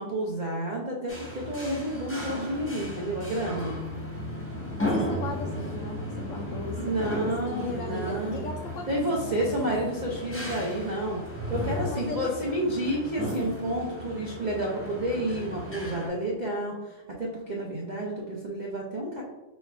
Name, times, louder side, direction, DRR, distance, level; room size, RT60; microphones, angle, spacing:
voice 1, 0.0-3.8 6.8-8.5 8.9-11.2 11.5-19.2, right 1 dB, 70° right, -3 dB, 0.4 m, -30 dB
sound 1, 1.1-16.1, equal, 10° left, 0.7 m, -35 dB
voice 2, 4.8-9.6 11.6-12.3, left 3 dB, 70° left, 0 dB, 0.8 m, -38 dB
4.3 x 2.4 x 4.7 m, 1.1 s
omnidirectional pair, 1.8 m